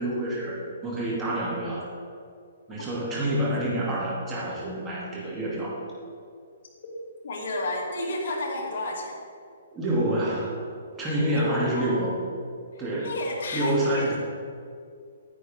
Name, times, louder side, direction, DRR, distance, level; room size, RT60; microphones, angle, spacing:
voice 1, 0.0-1.9 2.7-5.8 9.7-10.6 11.0-12.1 12.8-13.1 13.5-14.2, right 1 dB, 15° right, -6 dB, 2.5 m, -27 dB
voice 2, 7.2-9.2 11.3-12.0 12.7-14.2, left 1 dB, 60° left, -2 dB, 2.3 m, -31 dB
10.0 x 9.2 x 3.6 m, 2.3 s
hypercardioid pair, 155°, 0 cm